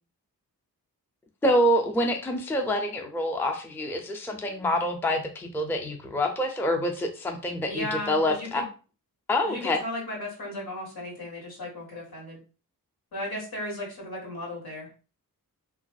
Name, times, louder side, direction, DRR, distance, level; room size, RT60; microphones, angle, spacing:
voice 1, 1.4-8.6 9.3-9.8, left 1 dB, 5° left, 3 dB, 0.4 m, -26 dB
voice 2, 7.7-8.6 9.4-12.4 13.1-14.9, left 1 dB, 80° left, -3 dB, 1.6 m, -35 dB
3.1 x 2.5 x 2.3 m, 0.35 s
wide cardioid pair, 85°, 37 cm